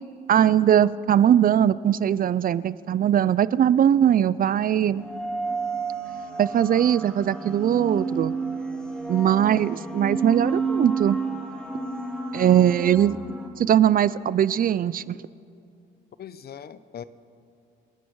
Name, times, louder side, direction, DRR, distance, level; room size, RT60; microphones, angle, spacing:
voice 1, 0.3-5.1 6.4-8.3 9.1-11.2 12.3-13.2 13.6-15.2, right 10 dB, 45° right, 18 dB, 0.4 m, -20 dB
sound 1, 5.0-13.5, right 4 dB, 5° left, 2.2 m, -30 dB
voice 2, 16.2-17.0, left 8 dB, 50° left, 15 dB, 0.7 m, -41 dB
25.5 x 11.0 x 4.7 m, 2.5 s
cardioid pair, 90°, 20 cm